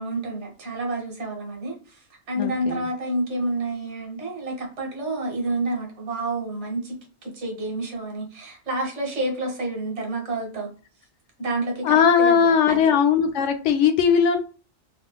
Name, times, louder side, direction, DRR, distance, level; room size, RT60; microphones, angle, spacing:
voice 1, 0.0-2.0 2.3-10.7 11.4-12.8, right 2 dB, 80° right, 0 dB, 1.4 m, -29 dB
voice 2, 2.4-2.8 11.8-14.4, left 7 dB, 85° left, 6 dB, 0.9 m, -19 dB
3.6 x 2.5 x 2.2 m, 0.36 s
omnidirectional pair, 1.2 m